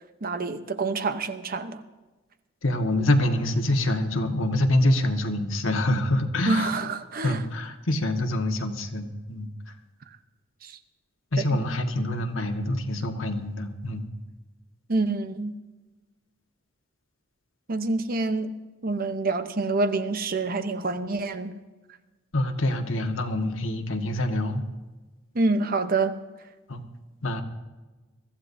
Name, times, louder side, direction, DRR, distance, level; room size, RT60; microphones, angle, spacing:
voice 1, 0.2-1.8 6.5-7.4 10.6-10.8 11.5-11.6 14.9-15.5 17.7-18.5 18.8-21.6 25.3-26.2, right 3 dB, 45° right, 0.8 m, -27 dB
voice 2, 2.6-6.8 7.2-9.5 11.3-14.0 22.3-24.6 26.7-26.8 27.2-27.4, left 1 dB, 70° left, 1.5 m, -25 dB
23.5 x 14.5 x 2.7 m
head